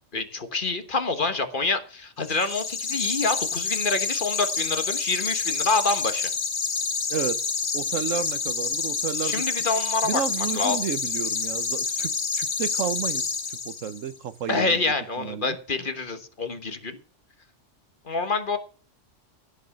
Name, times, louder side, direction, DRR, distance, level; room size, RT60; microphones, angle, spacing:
voice 1, 0.1-6.3 9.2-10.2 10.5-10.8 14.5-17.0 18.1-18.6, left 3 dB, 45° left, 1.4 m, -27 dB
sound 1, 2.2-14.1, left 5 dB, 85° left, 2.0 m, -28 dB
voice 2, 7.1-7.4 7.7-9.4 10.0-15.6, right 8 dB, 90° right, 1.3 m, -32 dB
16.0 x 5.9 x 6.4 m
omnidirectional pair, 1.3 m